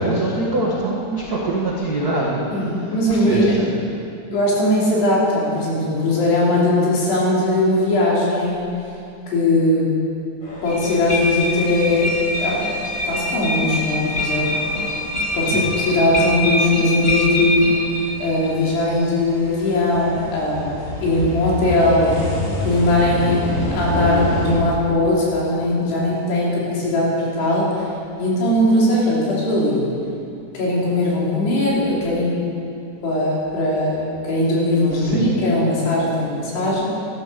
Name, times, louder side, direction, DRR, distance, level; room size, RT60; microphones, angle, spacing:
voice 1, 0.0-2.4 3.1-3.7 15.4-15.7 34.9-35.3, right 2 dB, 80° right, -5 dB, 0.8 m, -23 dB
voice 2, 2.5-3.5 4.3-8.7 9.3-9.9 10.6-14.5 15.3-17.7 18.2-22.2 22.6-27.9 28.2-29.9 30.5-32.4 33.0-36.8, left 1 dB, 75° left, -5 dB, 5.4 m, -19 dB
sound 1, 10.4-24.5, left 1 dB, 50° left, 6.3 m, -30 dB
sound 2, 10.6-18.3, left 1 dB, 30° left, 1.1 m, -24 dB
14.0 x 12.0 x 6.8 m, 2.6 s
omnidirectional pair, 4.8 m